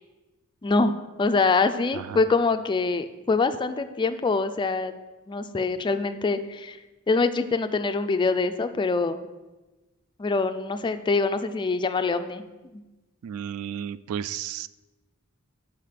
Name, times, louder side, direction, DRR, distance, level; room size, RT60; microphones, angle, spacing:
voice 1, 0.6-0.9 1.2-4.9 5.3-6.8 7.1-9.3 10.2-12.4 12.7-12.8, left 3 dB, 20° left, 9 dB, 0.3 m, -24 dB
voice 2, 13.2-14.7, right 9 dB, 75° right, 17 dB, 0.3 m, -33 dB
6.1 x 5.0 x 5.7 m, 1.1 s
head